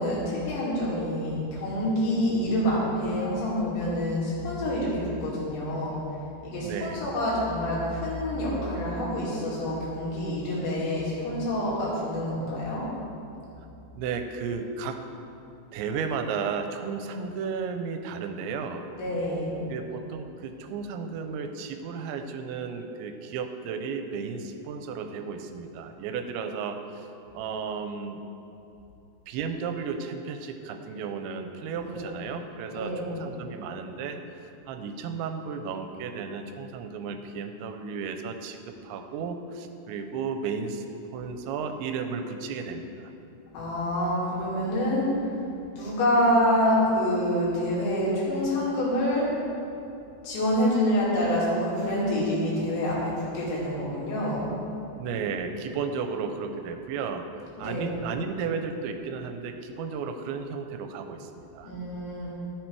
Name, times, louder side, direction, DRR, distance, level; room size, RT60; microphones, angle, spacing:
voice 1, 0.0-6.0 6.4-12.8 19.0-19.6 31.8-32.1 32.7-33.2 43.5-45.1 45.7-49.3 50.2-54.5 57.6-58.0 61.6-62.3, left 1 dB, 80° left, -7 dB, 4.8 m, -27 dB
voice 2, 6.6-7.0 13.9-15.0 15.7-18.9 19.7-27.1 27.3-28.2 29.3-40.9 41.1-43.1 55.0-57.3 57.6-61.7, right 5 dB, 85° right, 7 dB, 3.0 m, -34 dB
13.0 x 8.0 x 4.7 m, 2.8 s
omnidirectional pair, 5.1 m